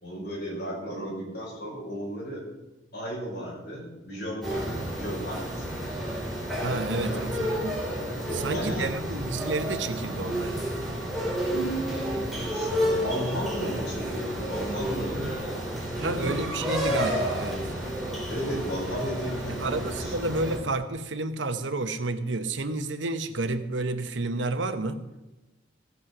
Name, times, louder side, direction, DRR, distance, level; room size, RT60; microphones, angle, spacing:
voice 1, 0.0-2.4 2.9-5.7 7.0-7.3 8.3-8.9 12.5-16.4 18.3-20.2, equal, 60° left, -4 dB, 5.9 m, -34 dB
sound 1, 4.4-20.6, equal, ahead, 3.2 m, -31 dB
voice 2, 6.6-7.8 8.3-10.6 16.0-17.6 19.6-25.0, right 2 dB, 80° right, 9 dB, 1.0 m, -30 dB
15.0 x 8.6 x 6.1 m, 1.0 s
head